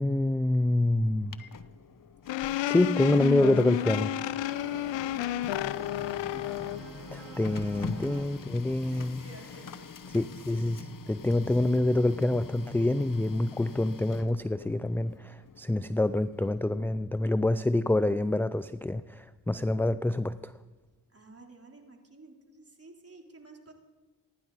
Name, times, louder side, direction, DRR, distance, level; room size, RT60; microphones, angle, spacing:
voice 1, 0.0-1.4 2.7-4.1 7.1-9.2 10.1-20.5, left 2 dB, 5° left, 15 dB, 0.4 m, -26 dB
Printer, 1.0-16.8, left 6 dB, 45° left, 0.9 m, -45 dB
sound 1, 2.3-6.8, left 14 dB, 80° left, 0.5 m, -31 dB
voice 2, 2.3-3.8 4.1-5.9 6.3-6.6 7.4-7.7 8.9-10.2 21.1-23.7, right 2 dB, 30° right, 1 dB, 3.6 m, -52 dB
sound 2, 2.6-8.2, right 3 dB, 75° right, 4.1 m, -46 dB
27.0 x 10.5 x 4.1 m, 1.2 s
supercardioid pair, 40°, 45 cm